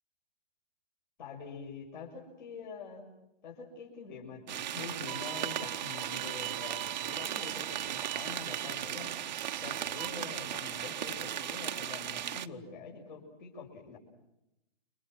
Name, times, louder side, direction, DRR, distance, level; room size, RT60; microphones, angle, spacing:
voice 1, 1.2-3.0 3.4-9.1 9.6-14.0, left 5 dB, 50° left, -1 dB, 6.6 m, -45 dB
sound 1, 4.5-12.5, right 10 dB, 45° right, 1.1 m, -37 dB
Bowed string instrument, 5.1-10.1, right 19 dB, 25° right, 1.1 m, -43 dB
29.5 x 26.0 x 6.3 m, 0.88 s
hypercardioid pair, 165°, 31 cm